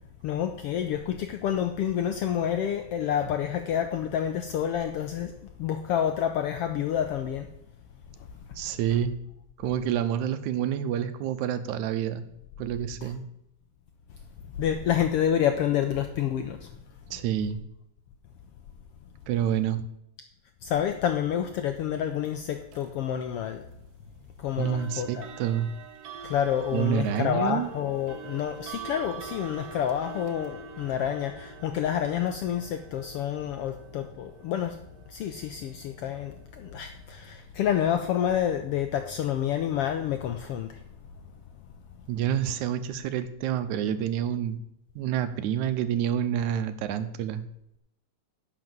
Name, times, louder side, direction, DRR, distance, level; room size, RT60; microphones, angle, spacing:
voice 1, 0.2-7.5 13.0-13.1 14.6-16.7 20.6-23.6 24.4-25.3 26.2-34.8 35.1-40.8, left 9 dB, 85° left, 7 dB, 1.3 m, -28 dB
voice 2, 8.6-9.2 9.6-12.3 12.6-13.2 17.1-17.6 19.3-19.8 24.6-25.7 26.7-27.7 42.1-44.6 45.0-47.4, right 9 dB, 85° right, 11 dB, 2.1 m, -28 dB
sound 1, 22.7-22.9 24.6-37.4, right 7 dB, 65° right, 1.9 m, -45 dB
11.0 x 5.4 x 7.6 m, 0.79 s
omnidirectional pair, 3.4 m